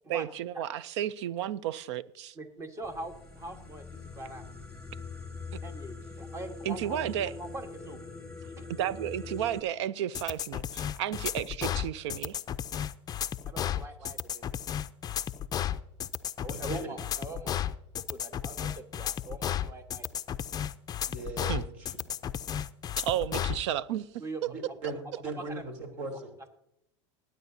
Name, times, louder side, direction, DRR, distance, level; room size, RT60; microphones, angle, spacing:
voice 1, 0.1-2.4 4.9-5.0 6.6-7.3 8.8-12.4 21.5-21.7 23.0-24.1 24.4-24.5, right 11 dB, 75° right, 0.6 m, -32 dB
voice 2, 2.4-3.9 4.1-4.4 5.6-7.0 7.4-8.0 8.6-8.7 13.4-14.6 16.4-17.5 18.1-20.2 24.2-24.4 25.4-25.7, right 2 dB, 20° right, 1.4 m, -42 dB
sound 1, 2.8-9.6, left 4 dB, 5° left, 2.5 m, -43 dB
sound 2, 10.1-23.6, left 10 dB, 25° left, 0.5 m, -33 dB
voice 3, 16.5-16.9 21.0-22.0 24.5-26.4, right 3 dB, 55° right, 3.3 m, -39 dB
20.5 x 9.3 x 2.7 m
supercardioid pair, 110°, 15 cm